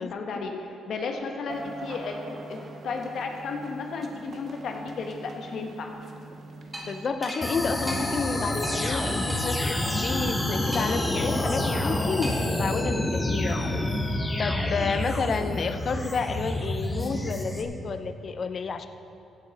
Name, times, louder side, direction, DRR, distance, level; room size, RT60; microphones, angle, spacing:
voice 1, 0.0-5.9, left 4 dB, 65° left, 3 dB, 1.2 m, -34 dB
sound 1, 1.5-7.1, right 3 dB, 50° right, 1.0 m, -43 dB
sound 2, 6.7-6.9 7.2-7.4 7.9-8.0 8.6-8.8 9.3-9.4 10.7-11.1 12.2-12.5, right 1 dB, 10° right, 2.7 m, -36 dB
voice 2, 6.8-9.6 9.9-13.6 14.4-18.9, left 4 dB, 45° left, 10 dB, 0.7 m, -30 dB
sound 3, 7.4-17.6, left 1 dB, 20° left, 1.1 m, -28 dB
16.0 x 8.5 x 4.1 m, 2.6 s
cardioid pair, 90°, 0 cm